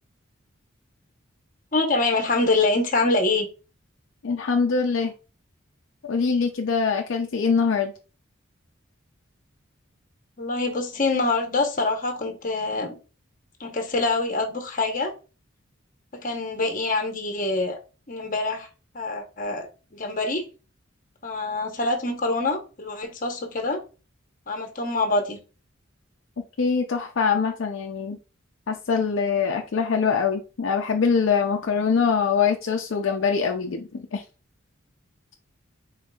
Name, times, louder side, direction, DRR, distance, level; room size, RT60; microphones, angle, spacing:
voice 1, 1.7-3.5 10.4-13.0 13.6-15.1 16.1-17.8 18.1-18.7 18.9-19.7 19.9-20.4 21.2-23.8 24.5-25.4, left 2 dB, 40° left, 4 dB, 0.9 m, -25 dB
voice 2, 4.2-5.1 6.0-7.9 26.6-28.2 28.7-34.2, left 5 dB, 65° left, 3 dB, 0.5 m, -23 dB
4.4 x 4.1 x 2.3 m, 0.32 s
head